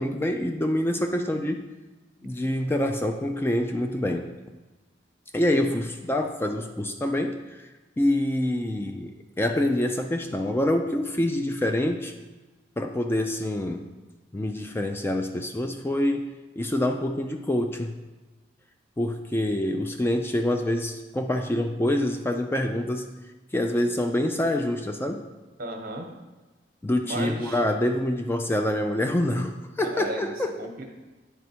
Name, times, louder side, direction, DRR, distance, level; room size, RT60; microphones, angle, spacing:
voice 1, 0.0-1.7 2.2-4.3 5.3-7.7 8.0-12.1 12.8-13.9 14.3-18.0 19.0-23.1 23.5-25.3 26.8-30.5, left 1 dB, 15° left, 5 dB, 0.3 m, -26 dB
voice 2, 25.6-26.1 27.0-27.6 29.8-30.9, right 1 dB, 55° right, 3 dB, 1.0 m, -35 dB
9.1 x 3.4 x 4.3 m, 1.2 s
head